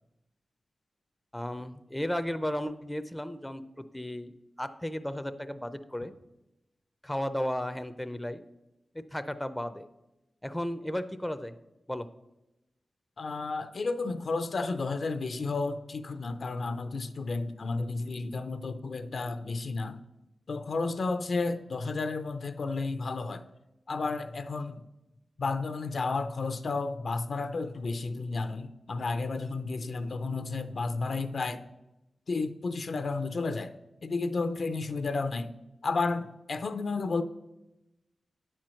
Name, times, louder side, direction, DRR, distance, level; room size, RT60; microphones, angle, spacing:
voice 1, 1.3-3.6 3.9-6.1 7.0-8.4 8.9-9.8 10.4-11.5 11.9-12.1, left 1 dB, 10° left, 0.5 m, -34 dB
voice 2, 13.2-20.0 20.5-23.4 23.9-24.8 25.4-31.6 32.3-33.8 34.0-35.5 35.8-37.2, left 3 dB, 65° left, 0.5 m, -32 dB
9.8 x 4.4 x 6.3 m
cardioid pair, 70°, 0 cm